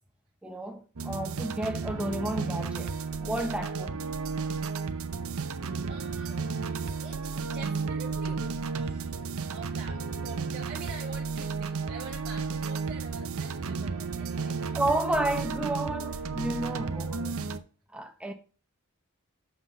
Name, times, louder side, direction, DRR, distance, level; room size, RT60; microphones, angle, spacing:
voice 1, 0.4-2.9 3.2-4.0 14.7-17.4 17.9-18.3, right 1 dB, 5° right, 1.1 m, -31 dB
sound 1, 1.0-17.6, right 4 dB, 70° right, 0.7 m, -33 dB
voice 2, 5.9-6.4 7.0-14.7, right 4 dB, 45° right, 1.3 m, -45 dB
6.8 x 5.8 x 5.6 m
head